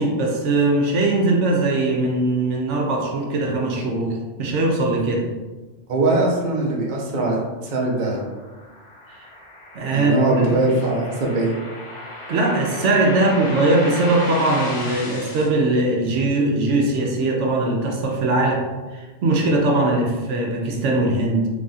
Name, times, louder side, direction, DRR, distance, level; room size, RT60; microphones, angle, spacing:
voice 1, 0.0-5.3 9.1-9.3 9.7-10.5 12.3-18.6 18.9-21.5, right 2 dB, 80° right, 0 dB, 1.0 m, -20 dB
voice 2, 5.9-8.2 9.9-11.5, right 2 dB, 45° right, -2 dB, 0.8 m, -21 dB
sound 1, 7.7-15.5, left 1 dB, 45° left, 0.4 m, -35 dB
3.4 x 2.4 x 4.0 m, 1.2 s
omnidirectional pair, 1.2 m